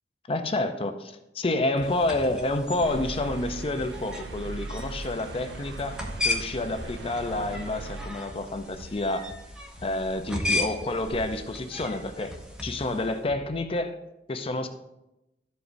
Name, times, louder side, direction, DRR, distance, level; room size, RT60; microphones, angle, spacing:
voice 1, 0.3-6.0 6.2-9.2 9.8-12.3 12.6-14.0 14.3-14.7, left 2 dB, 35° left, 8 dB, 0.5 m, -29 dB
sound 1, 1.8-13.8, left 1 dB, 60° left, 0.8 m, -48 dB
sound 2, 1.8-13.2, left 2 dB, 5° right, 0.8 m, -36 dB
sound 3, 2.8-8.1, right 3 dB, 85° right, 0.5 m, -39 dB
12.5 x 5.0 x 2.6 m, 0.93 s
head